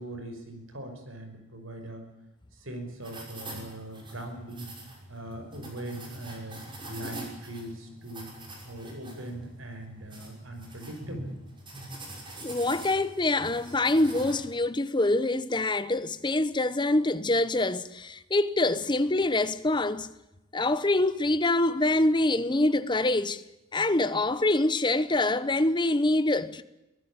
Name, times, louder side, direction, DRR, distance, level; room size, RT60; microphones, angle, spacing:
voice 1, 0.0-2.1 2.5-4.7 5.1-6.6 6.9-8.3 8.7-11.4, right 1 dB, 75° right, 5.8 m, -40 dB
sound 1, 3.0-14.3, right 1 dB, 25° right, 5.8 m, -44 dB
voice 2, 12.4-20.1 20.5-23.4 23.7-26.6, left 2 dB, 20° left, 0.9 m, -25 dB
24.0 x 16.0 x 8.8 m
head